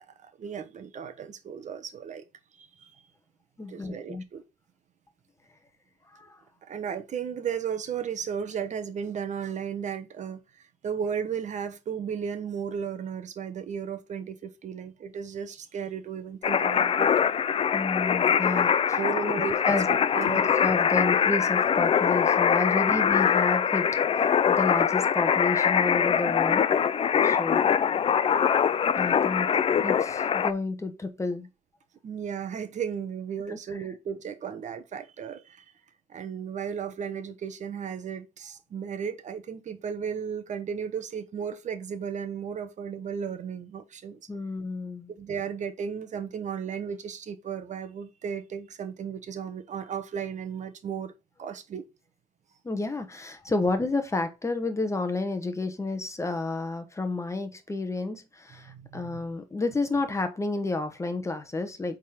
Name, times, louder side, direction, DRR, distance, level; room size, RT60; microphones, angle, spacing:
voice 1, 0.0-2.2 2.5-2.9 3.7-4.4 6.7-17.1 18.5-18.6 19.0-20.5 22.8-22.9 32.0-35.7 36.1-44.2 45.1-51.1 51.4-51.9 58.5-59.2, right 7 dB, 45° right, 1.0 m, -35 dB
voice 2, 3.6-4.2 6.1-6.4 17.7-19.0 19.6-19.9 20.3-26.7 27.2-27.6 28.9-29.5 29.8-31.5 33.5-33.6 44.3-45.1 52.6-62.0, left 3 dB, 15° left, 1.1 m, -30 dB
sound 1, 16.4-30.5, left 7 dB, 35° left, 0.5 m, -23 dB
8.3 x 3.8 x 4.3 m
cardioid pair, 110°, 17 cm